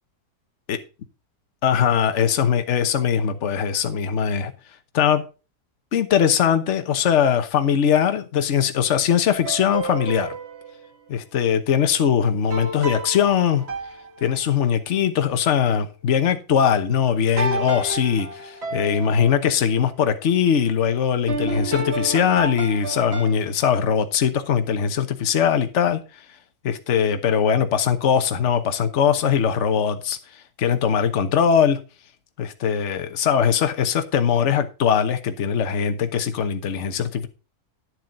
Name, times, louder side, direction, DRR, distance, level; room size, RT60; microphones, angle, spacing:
voice 1, 1.6-4.5 4.9-5.2 5.9-10.4 11.1-13.6 14.2-26.0 26.6-30.2 30.6-31.8 32.4-37.3, left 8 dB, 50° left, 1.3 m, -21 dB
sound 1, 9.3-10.9 12.5-14.7 17.4-19.4 21.3-23.3, right 2 dB, 40° right, 1.9 m, -30 dB
11.0 x 7.5 x 3.9 m
omnidirectional pair, 1.7 m